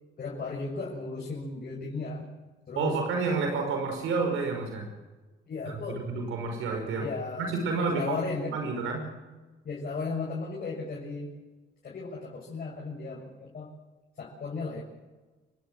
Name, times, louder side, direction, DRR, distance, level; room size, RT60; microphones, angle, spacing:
voice 1, 0.2-2.2 2.7-3.0 3.3-3.6 5.5-6.1 7.0-8.6 9.6-11.4 11.8-13.7 14.2-14.8, left 4 dB, 50° left, -3 dB, 6.8 m, -35 dB
voice 2, 2.8-4.9 5.6-7.1 7.4-8.2 8.5-9.0, right 4 dB, 85° right, 3 dB, 5.3 m, -30 dB
30.0 x 16.0 x 7.6 m, 1.2 s
cardioid pair, 90°, 20 cm